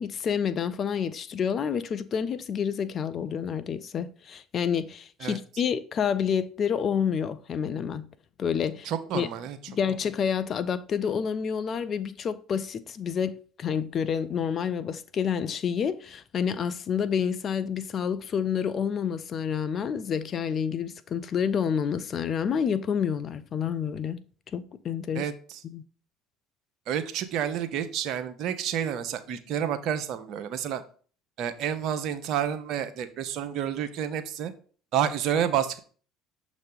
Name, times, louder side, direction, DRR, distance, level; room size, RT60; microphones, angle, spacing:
voice 1, 0.0-8.1 8.4-9.3 9.7-24.2 24.5-25.2 25.6-25.8, left 7 dB, 45° left, 0.5 m, -29 dB
voice 2, 8.8-9.6 25.1-25.6 26.9-30.8 31.4-34.5 34.9-35.8, right 9 dB, 60° right, 0.7 m, -29 dB
6.5 x 3.1 x 5.3 m
hypercardioid pair, 65°, 0 cm